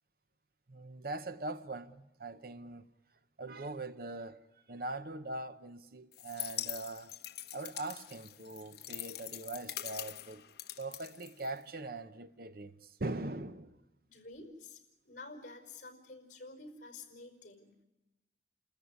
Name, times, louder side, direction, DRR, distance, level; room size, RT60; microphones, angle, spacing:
voice 1, 0.7-2.9 3.4-7.1 7.5-10.4 10.8-13.8, right 2 dB, 50° right, 0.9 m, -42 dB
sound 1, 6.1-11.8, left 13 dB, 60° left, 0.9 m, -43 dB
voice 2, 14.1-14.8 15.0-17.7, left 3 dB, 45° left, 5.0 m, -50 dB
29.5 x 14.0 x 9.9 m
head